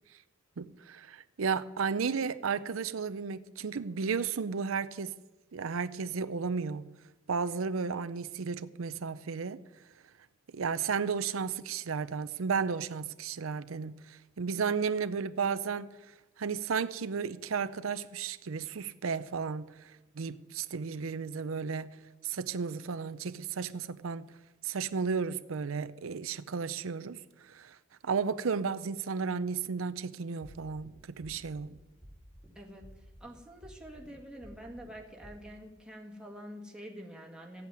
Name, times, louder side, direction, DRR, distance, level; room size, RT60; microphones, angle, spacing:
voice 1, 0.6-5.1 5.5-6.8 7.3-9.6 10.5-15.9 16.4-21.9 22.2-24.3 24.6-27.8 28.0-31.7, right 5 dB, 90° right, 0.6 m, -33 dB
sound 1, 30.4-30.9 31.2-31.7 32.0-32.5 32.8-33.3 33.6-34.1 34.4-34.9 35.2-35.3, equal, 15° left, 4.1 m, -51 dB
voice 2, 32.6-37.7, equal, 5° right, 1.9 m, -47 dB
14.5 x 8.4 x 9.2 m
head